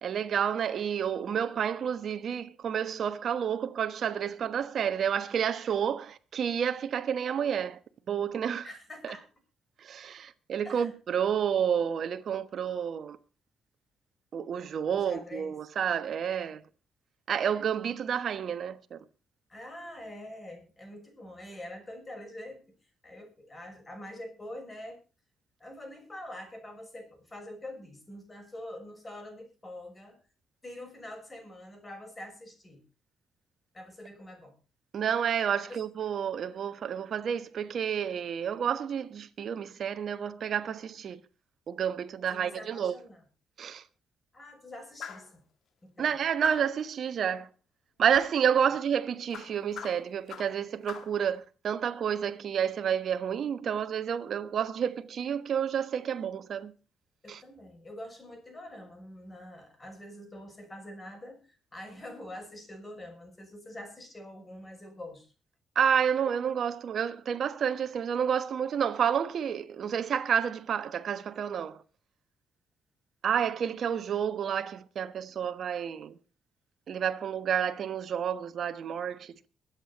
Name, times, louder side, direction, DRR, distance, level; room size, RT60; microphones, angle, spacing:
voice 1, 0.0-7.8 8.1-8.7 9.0-9.1 9.8-13.2 14.3-16.6 17.3-19.0 34.9-41.2 41.7-42.9 43.6-43.8 46.0-47.5 48.0-56.7 57.3-57.4 65.7-71.8 73.2-76.2 76.9-79.5, right 8 dB, 60° right, 1.2 m, -30 dB
voice 2, 8.6-9.2 10.6-10.9 11.3-11.5 14.9-15.5 19.5-22.6 23.0-25.0 25.6-30.2 30.6-32.8 33.7-34.5 35.6-35.8 42.3-43.2 44.3-45.4 45.8-46.2 57.2-65.3, left 1 dB, 25° left, 6.4 m, -45 dB
sound 1, 45.0-45.3 46.4-46.8 48.1-48.4 49.3-50.6 50.9-51.2, left 8 dB, 70° left, 2.0 m, -42 dB
23.5 x 8.5 x 4.1 m
cardioid pair, 90°, 0 cm